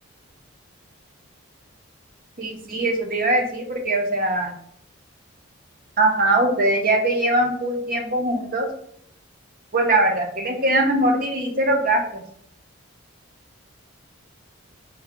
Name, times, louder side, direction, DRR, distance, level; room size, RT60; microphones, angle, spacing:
voice 1, 2.4-4.5 6.0-8.7 9.7-12.0, right 1 dB, 40° right, 2 dB, 0.7 m, -21 dB
4.5 x 2.2 x 3.6 m, 0.66 s
head